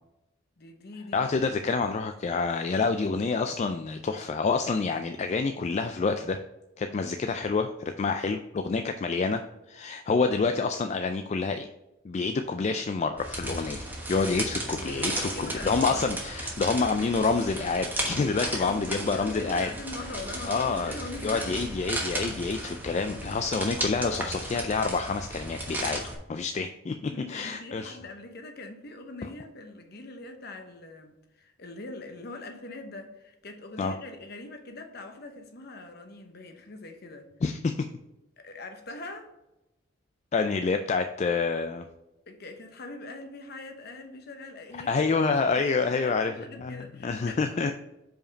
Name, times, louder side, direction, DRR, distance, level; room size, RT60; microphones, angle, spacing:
voice 1, 0.6-1.2 14.3-16.1 18.5-21.7 27.1-37.3 38.4-39.3 42.3-44.9 45.6-47.7, left 2 dB, 50° left, 0.9 m, -42 dB
voice 2, 1.1-6.4 6.8-9.4 9.7-11.7 12.0-19.7 20.5-21.0 21.2-26.0 26.3-28.0 33.8-33.9 37.4-37.7 40.3-41.8 44.9-46.3 46.6-47.7, left 4 dB, 35° left, 0.3 m, -28 dB
sound 1, 13.2-26.1, right 1 dB, 10° right, 1.1 m, -35 dB
5.1 x 5.0 x 5.2 m
head